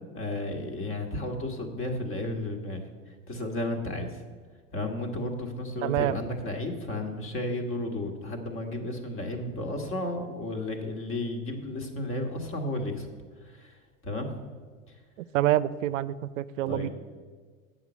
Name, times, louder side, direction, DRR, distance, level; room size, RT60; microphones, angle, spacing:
voice 1, 0.1-2.8 3.3-4.1 4.7-13.1 13.6-13.7 14.0-14.3 16.6-16.9, left 1 dB, 30° left, 4 dB, 1.7 m, -33 dB
voice 2, 5.8-6.2 15.3-16.9, right 14 dB, 75° right, 15 dB, 0.5 m, -26 dB
8.1 x 5.8 x 7.4 m, 1.5 s
hypercardioid pair, 105°, 39 cm